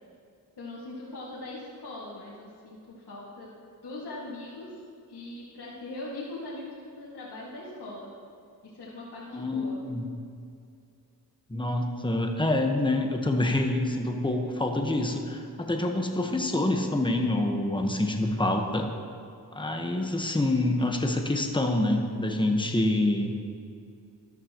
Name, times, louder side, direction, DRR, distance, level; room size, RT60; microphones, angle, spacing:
voice 1, 0.6-3.5 3.8-4.8 5.1-8.1 8.6-9.8, left 2 dB, 70° left, -7 dB, 2.3 m, -41 dB
voice 2, 9.3-10.0 11.5-18.9 19.5-23.4, left 1 dB, 10° left, 3 dB, 1.3 m, -26 dB
14.0 x 12.5 x 3.1 m, 2.4 s
cardioid pair, 55°, 40 cm